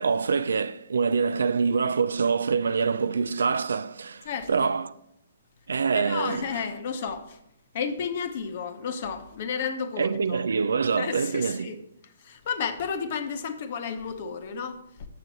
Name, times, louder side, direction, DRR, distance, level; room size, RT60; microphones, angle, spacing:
voice 1, 0.0-4.9 5.7-6.6 10.0-11.7, right 5 dB, 75° right, 0.3 m, -25 dB
voice 2, 4.2-4.7 5.9-7.4 7.7-10.4 11.0-11.8 12.2-15.1, left 6 dB, 50° left, 0.9 m, -32 dB
7.6 x 6.6 x 4.0 m
hypercardioid pair, 130°, 0 cm